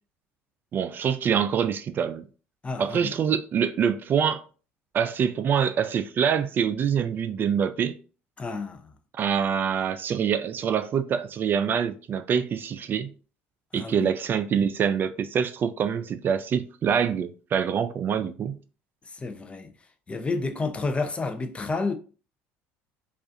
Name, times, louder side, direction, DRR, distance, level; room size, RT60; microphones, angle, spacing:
voice 1, 0.7-2.2 2.8-4.4 4.9-8.0 9.1-13.1 13.7-18.6, right 7 dB, 40° right, 0.3 m, -25 dB
voice 2, 2.6-3.1 8.4-8.8 13.7-14.1 19.1-19.7 20.1-21.9, left 3 dB, 20° left, 0.6 m, -30 dB
4.8 x 2.5 x 2.5 m
supercardioid pair, 95°, 5 cm